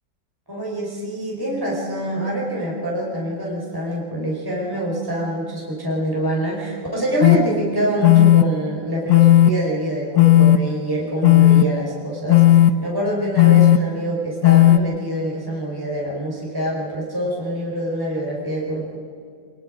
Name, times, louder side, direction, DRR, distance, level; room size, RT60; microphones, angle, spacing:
voice 1, 0.5-19.0, right 1 dB, 10° right, -3 dB, 4.6 m, -25 dB
sound 1, 7.2-7.4 8.0-8.4 9.1-9.5 10.2-10.6 11.2-11.6 12.3-12.7 13.4-13.8 14.4-14.8, left 14 dB, 75° left, 1.5 m, -12 dB
27.5 x 20.0 x 5.1 m, 2.3 s
omnidirectional pair, 2.0 m